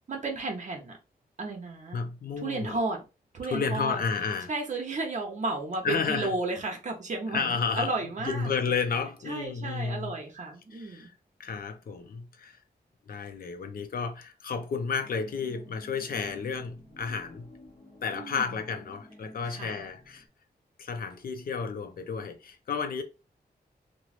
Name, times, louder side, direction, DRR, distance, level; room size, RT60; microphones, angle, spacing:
voice 1, 0.1-0.9 1.4-2.0 2.4-3.0 3.3-4.0 4.5-8.5 9.3-11.1 18.1-18.5 19.4-19.8, right 3 dB, 45° right, 0.8 m, -33 dB
voice 2, 1.9-2.8 3.4-4.5 5.8-6.4 7.3-7.9 8.2-10.2 10.7-11.1 11.4-12.6 13.1-17.5 18.0-20.2 20.8-23.0, left 5 dB, 60° left, 0.5 m, -32 dB
sound 1, 15.0-20.3, left 1 dB, 25° left, 0.8 m, -51 dB
3.0 x 2.1 x 2.4 m
wide cardioid pair, 125°, 17 cm